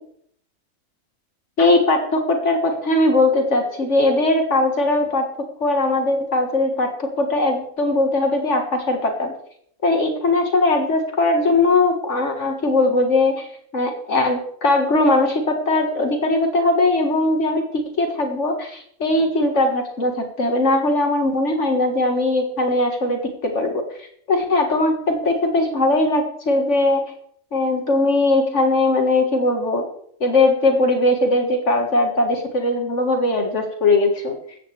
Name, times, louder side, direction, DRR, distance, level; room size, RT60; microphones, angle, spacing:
voice 1, 1.6-5.3 5.6-9.3 9.8-13.4 13.7-27.1 27.5-29.8 30.2-34.4, left 2 dB, 65° left, 4 dB, 2.0 m, -20 dB
16.0 x 13.5 x 3.4 m, 0.64 s
omnidirectional pair, 1.4 m